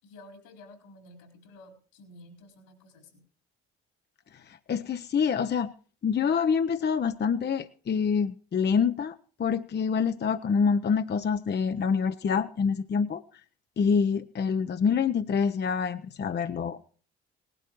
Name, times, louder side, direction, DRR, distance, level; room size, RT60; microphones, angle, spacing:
voice 1, 0.0-3.2, left 1 dB, 80° left, 3 dB, 4.4 m, -51 dB
voice 2, 4.5-5.7 6.0-13.2 13.8-16.8, left 6 dB, 30° left, 10 dB, 0.7 m, -26 dB
19.0 x 11.5 x 3.1 m, 0.43 s
hypercardioid pair, 50°, 33 cm